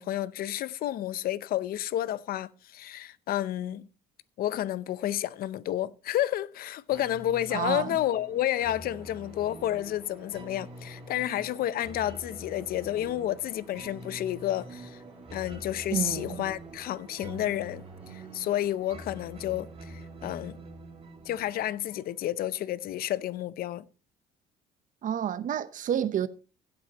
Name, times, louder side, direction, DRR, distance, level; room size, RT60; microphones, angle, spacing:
voice 1, 0.0-3.9 4.4-15.0 15.3-20.6 21.2-23.9, left 12 dB, 60° left, 0.6 m, -31 dB
sound 1, 6.9-22.4, right 2 dB, 35° right, 2.2 m, -46 dB
voice 2, 7.5-8.0 15.9-16.4 25.0-26.3, right 9 dB, 50° right, 0.8 m, -29 dB
sound 2, 8.3-22.0, equal, 5° right, 3.8 m, -56 dB
16.5 x 7.7 x 2.9 m
cardioid pair, 110°, 17 cm